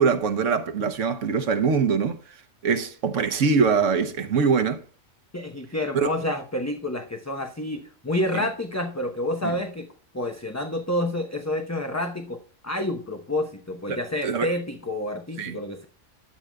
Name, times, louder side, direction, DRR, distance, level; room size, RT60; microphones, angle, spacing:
voice 1, 0.0-2.2 2.6-4.8 5.9-6.1 9.4-9.5 13.9-14.0 14.2-14.5 15.4-15.6, right 5 dB, 80° right, 1.3 m, -23 dB
voice 2, 5.3-9.9 10.1-12.4 12.6-15.8, left 1 dB, 15° left, 0.8 m, -29 dB
12.5 x 7.9 x 2.3 m
omnidirectional pair, 1.3 m